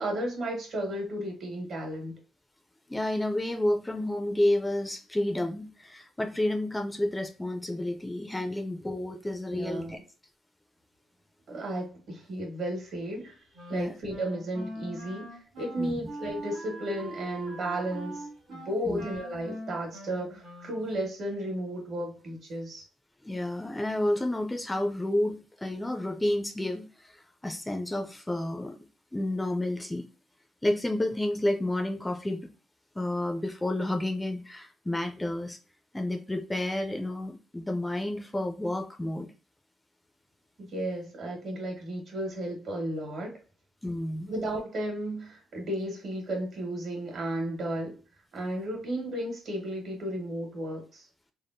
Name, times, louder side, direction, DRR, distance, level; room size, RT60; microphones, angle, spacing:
voice 1, 0.0-2.2 9.5-10.0 11.5-13.4 13.7-22.8 40.6-43.4 44.3-48.0 48.3-51.1, right 1 dB, 60° right, 1.4 m, -34 dB
voice 2, 2.9-10.0 13.7-13.9 15.8-15.9 18.8-19.1 23.2-28.8 29.1-30.0 30.6-32.5 33.0-35.6 35.9-39.3 43.8-44.3, left 1 dB, 10° left, 0.4 m, -30 dB
Wind instrument woodwind instrument, 13.5-21.0, equal, 80° right, 1.5 m, -42 dB
3.4 x 2.0 x 2.5 m
cardioid pair, 90°, 0 cm